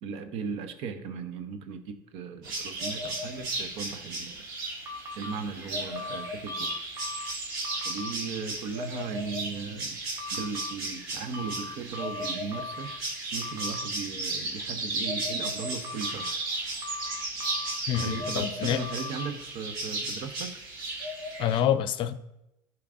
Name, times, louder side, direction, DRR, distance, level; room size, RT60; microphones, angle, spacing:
voice 1, 0.0-4.4 5.2-6.8 7.8-10.0 10.3-12.9 13.3-16.3 18.0-20.5, right 5 dB, 60° right, 0.9 m, -37 dB
sound 1, 2.4-21.6, right 2 dB, 80° right, 2.1 m, -35 dB
S.O.S in morse, 4.8-5.3 5.9-7.3 7.6-8.1 10.2-10.7 11.3-13.0 13.4-13.9 15.8-16.3 16.8-18.3 18.8-19.3, left 3 dB, 30° right, 1.3 m, -39 dB
voice 2, 17.9-18.8 21.4-22.1, left 10 dB, 50° left, 0.5 m, -27 dB
11.5 x 4.7 x 2.6 m
hypercardioid pair, 75°, 11 cm